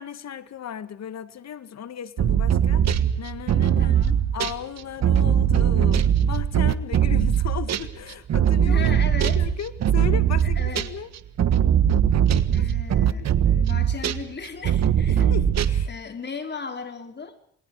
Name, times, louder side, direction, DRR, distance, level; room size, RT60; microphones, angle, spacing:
voice 1, 0.0-2.9 3.2-4.0 4.3-8.8 9.1-11.1 12.5-12.7 13.0-13.6 15.1-15.9, left 9 dB, 60° left, 2.1 m, -36 dB
sound 1, 2.2-7.9 8.3-11.0 11.4-14.3 14.6-15.9, right 9 dB, 60° right, 1.5 m, -21 dB
voice 2, 3.8-4.2 8.6-9.4 10.4-10.9 12.5-13.3 13.6-15.5 15.9-17.3, left 5 dB, 35° left, 5.0 m, -36 dB
28.5 x 21.5 x 5.0 m
cardioid pair, 90°, 30 cm